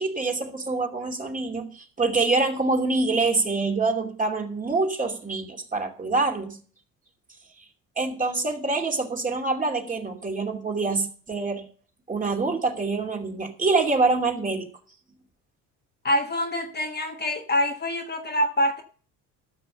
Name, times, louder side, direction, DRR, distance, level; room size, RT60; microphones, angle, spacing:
voice 1, 0.0-6.6 8.0-11.6 12.1-14.7, right 3 dB, 20° right, 2.6 m, -25 dB
voice 2, 16.0-18.8, left 1 dB, 30° left, 1.5 m, -25 dB
13.0 x 6.2 x 6.8 m
supercardioid pair, 95°, 36 cm